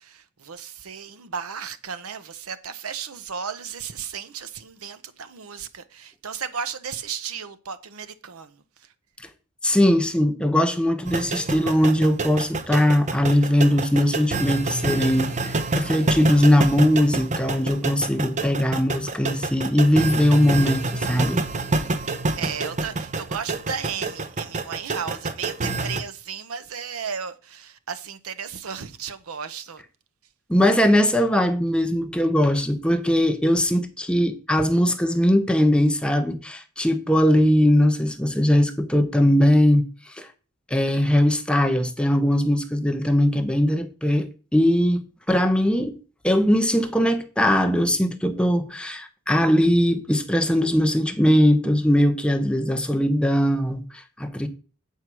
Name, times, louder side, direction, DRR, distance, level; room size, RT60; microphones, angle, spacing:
voice 1, 0.0-8.9 22.3-29.8, right 7 dB, 85° right, 0.8 m, -34 dB
voice 2, 9.6-21.4 30.5-40.3 40.7-46.0 46.2-54.5, left 1 dB, 5° left, 0.8 m, -20 dB
sound 1, 11.1-26.0, right 3 dB, 35° right, 0.7 m, -27 dB
8.3 x 4.6 x 6.1 m
head